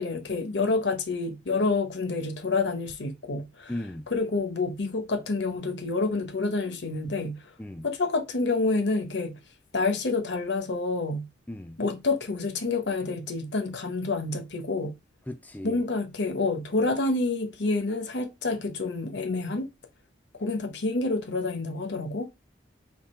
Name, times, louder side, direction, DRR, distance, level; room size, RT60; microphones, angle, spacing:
voice 1, 0.0-3.7 4.1-7.4 7.8-9.3 9.7-11.3 11.8-14.9 15.6-19.7 20.4-22.3, left 3 dB, 65° left, 0.9 m, -28 dB
voice 2, 3.7-4.1 7.6-7.9 11.5-11.8 15.3-15.8, left 1 dB, 10° left, 0.4 m, -36 dB
3.6 x 2.8 x 4.3 m
head